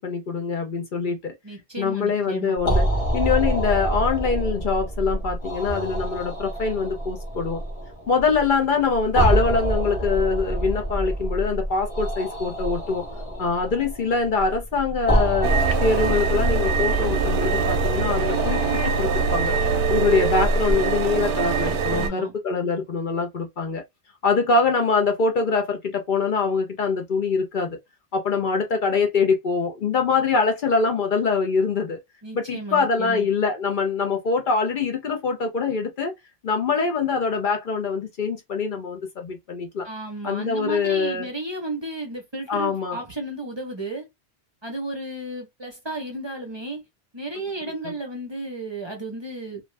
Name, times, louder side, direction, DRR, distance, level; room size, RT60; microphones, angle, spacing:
voice 1, 0.0-1.3 1.8-2.8 3.1-7.6 8.1-13.0 13.4-15.5 15.8-18.6 19.0-19.6 19.9-23.8 24.2-27.8 28.1-32.0 32.3-36.1 36.4-39.9 40.2-41.3 42.5-43.0 47.8-47.9, left 4 dB, 55° left, 0.7 m, -24 dB
voice 2, 1.4-2.6 21.9-22.3 32.2-33.3 39.8-44.1 44.6-46.8 47.1-49.6, right 2 dB, 30° right, 0.7 m, -33 dB
sound 1, 2.6-20.7, right 1 dB, 35° left, 1.0 m, -27 dB
sound 2, 15.4-22.1, right 4 dB, 65° right, 0.7 m, -23 dB
2.5 x 2.3 x 3.2 m
omnidirectional pair, 1.1 m